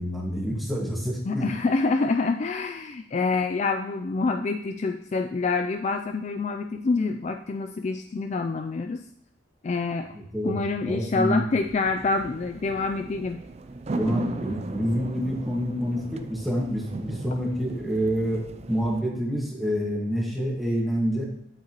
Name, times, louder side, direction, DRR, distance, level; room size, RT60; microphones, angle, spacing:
voice 1, 0.0-1.5 10.1-10.6 10.8-11.4 13.9-21.2, equal, ahead, -2 dB, 1.6 m, -27 dB
voice 2, 1.3-9.0 9.6-10.1 10.4-13.4, left 3 dB, 35° left, 5 dB, 0.3 m, -26 dB
sound 1, 11.6-19.0, right 2 dB, 35° right, 0.4 m, -37 dB
8.6 x 7.4 x 3.0 m, 0.76 s
head